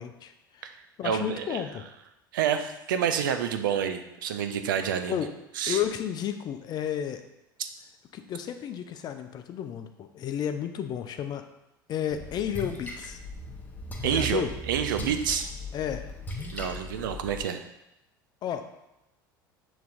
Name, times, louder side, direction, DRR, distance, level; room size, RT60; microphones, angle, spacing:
voice 1, 0.0-1.8 5.1-5.3 5.7-7.2 8.1-11.4 11.9-13.2 14.0-14.5 15.7-16.1 18.4-18.7, left 9 dB, 40° left, 8 dB, 0.4 m, -32 dB
voice 2, 1.0-1.6 2.3-5.2 5.6-5.8 7.6-7.7 14.0-15.5 16.5-17.6, right 8 dB, 70° right, 8 dB, 0.4 m, -28 dB
Splash splatter, 12.1-17.4, equal, 15° left, 0.8 m, -38 dB
6.8 x 3.1 x 2.5 m, 0.88 s
figure-of-eight pair, 70°, 11 cm